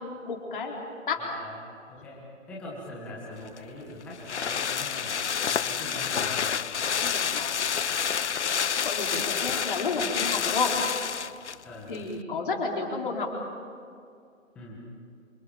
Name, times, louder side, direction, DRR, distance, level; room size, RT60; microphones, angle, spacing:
voice 1, 0.0-0.7 1.1-1.2 6.8-7.7 8.8-10.7 11.9-13.3, left 4 dB, 40° left, 0 dB, 4.2 m, -31 dB
voice 2, 1.2-1.6 1.9-2.2 2.5-5.1 5.5-6.6 11.6-11.9 14.5-14.7, left 1 dB, 5° left, -5 dB, 1.5 m, -42 dB
sound 1, 3.5-11.6 12.0-12.1, left 7 dB, 60° left, 0.6 m, -28 dB
29.5 x 28.0 x 5.1 m, 2.3 s
hypercardioid pair, 170°, 40 cm